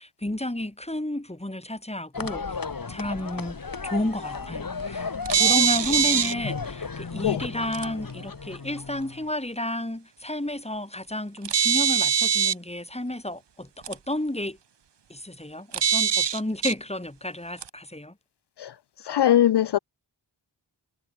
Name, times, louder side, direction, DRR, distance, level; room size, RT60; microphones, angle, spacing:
voice 1, 0.0-2.6 2.9-14.6 15.1-18.1, left 1 dB, 15° left, 6.3 m, -31 dB
sound 1, 2.1-9.3, left 4 dB, 50° left, 2.1 m, -34 dB
sound 2, 5.3-6.3 7.7-7.8 11.4-12.5 13.9-14.0 15.7-16.7 17.6-17.7, right 8 dB, 70° right, 1.0 m, -22 dB
voice 2, 19.0-19.8, left 11 dB, 70° left, 0.5 m, -21 dB
wide cardioid pair, 80°, 43 cm